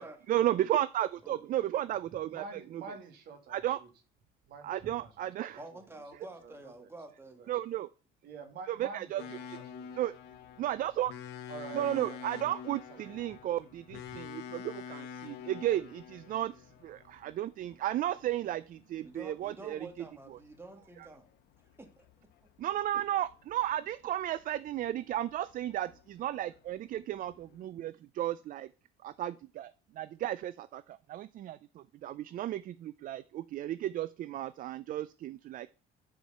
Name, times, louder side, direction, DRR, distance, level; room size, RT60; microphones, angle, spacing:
voice 1, 0.3-2.4 3.5-3.8 4.6-5.6 7.5-7.9 8.7-9.2 10.0-10.1 10.6-11.1 11.7-19.9 20.3-20.4 21.0-21.1 22.6-28.7 29.0-35.7, right 13 dB, 55° right, 15 dB, 0.4 m, -34 dB
voice 2, 2.2-3.9 4.5-6.9 7.2-7.5 8.2-9.9 11.5-12.5 12.9-13.1 14.1-14.2, right 4 dB, 70° right, 5 dB, 2.1 m, -48 dB
voice 3, 5.6-7.6 19.0-21.3 21.8-22.1, right 2 dB, 15° right, 5 dB, 1.9 m, -49 dB
sound 1, 9.2-27.6, left 7 dB, 80° left, 1.1 m, -48 dB
9.3 x 4.8 x 5.5 m, 0.35 s
cardioid pair, 110°, 17 cm